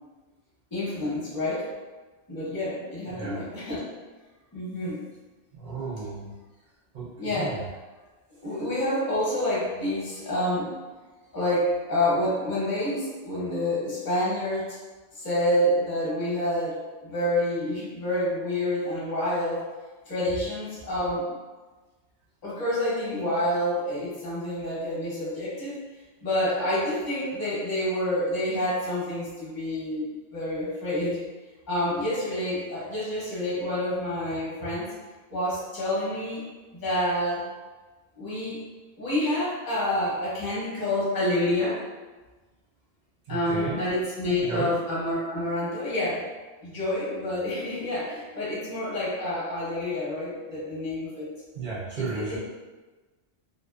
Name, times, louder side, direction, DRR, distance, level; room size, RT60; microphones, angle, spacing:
voice 1, 0.7-1.7 2.3-3.8 4.5-5.0 7.2-7.6 8.4-10.7 11.3-14.8 15.1-19.7 20.1-21.3 22.4-25.7 26.2-31.2 31.7-34.9 35.3-36.4 36.7-37.5 38.1-38.6 39.0-41.8 43.3-46.2 46.6-51.3 52.0-52.4, left 1 dB, 20° left, -8 dB, 0.7 m, -28 dB
voice 2, 3.1-3.4 5.5-6.3 6.9-7.7 43.3-43.8 44.4-44.7 51.6-52.4, right 4 dB, 65° right, -5 dB, 0.4 m, -33 dB
2.5 x 2.3 x 2.3 m, 1.3 s
omnidirectional pair, 1.3 m